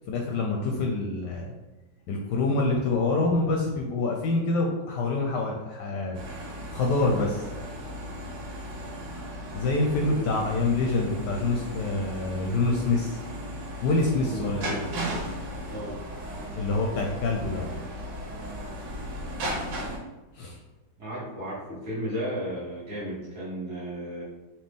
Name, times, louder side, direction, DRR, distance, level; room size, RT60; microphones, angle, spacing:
voice 1, 0.1-1.5 2.1-6.2 6.7-7.5 9.5-13.2 13.8-14.8 16.6-17.7 20.3-20.6, left 3 dB, 70° left, 1 dB, 1.1 m, -26 dB
sound 1, 6.1-20.0, equal, 90° right, 1.7 m, -36 dB
voice 2, 10.0-10.4 14.2-14.5 15.7-16.2 21.0-24.2, equal, 40° right, -8 dB, 1.5 m, -34 dB
4.3 x 2.8 x 3.5 m, 1.1 s
omnidirectional pair, 2.1 m